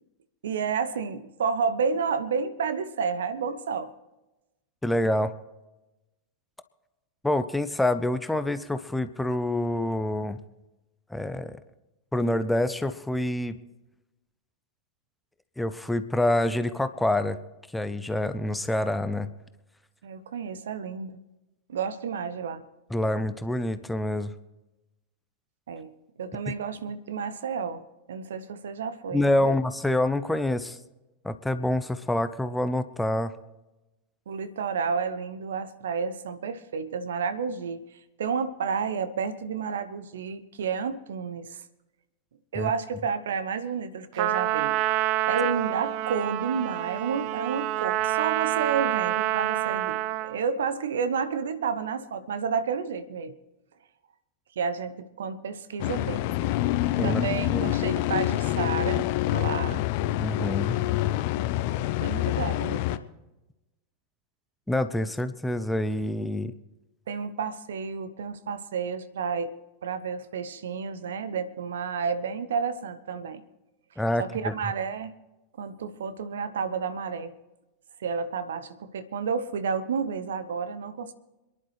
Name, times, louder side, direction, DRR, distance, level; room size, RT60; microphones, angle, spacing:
voice 1, 0.4-3.9 20.0-21.2 21.7-22.6 25.7-25.9 26.2-27.8 28.1-29.6 34.3-37.8 38.2-41.6 42.5-44.8 45.2-53.3 54.6-56.2 57.0-59.8 62.0-63.0 67.1-69.5 69.8-73.4 74.2-75.1 75.6-77.3 78.0-81.1, right 6 dB, 65° right, 13 dB, 0.9 m, -31 dB
voice 2, 4.8-5.3 7.2-10.4 11.1-11.6 12.1-13.6 15.6-17.4 17.7-19.3 22.9-24.3 26.5-26.6 29.1-30.8 31.2-33.3 42.5-42.7 57.0-57.7 60.2-60.8 64.7-66.5 74.0-74.7, left 1 dB, 5° left, 11 dB, 0.8 m, -27 dB
Trumpet, 44.2-50.4, right 15 dB, 45° right, 0.4 m, -27 dB
sound 1, 55.8-63.0, left 15 dB, 45° left, 0.6 m, -26 dB
26.5 x 11.0 x 3.2 m, 1.0 s
figure-of-eight pair, 90°, 0 cm